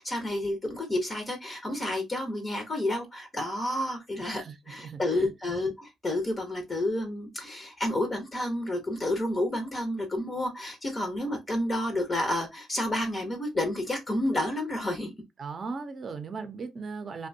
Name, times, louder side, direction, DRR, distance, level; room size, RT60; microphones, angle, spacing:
voice 1, 0.0-15.1, left 1 dB, 25° left, 0.7 m, -30 dB
voice 2, 4.2-5.2 15.4-17.3, right 4 dB, 40° right, 0.6 m, -38 dB
2.6 x 2.2 x 2.5 m
cardioid pair, 90°, 0 cm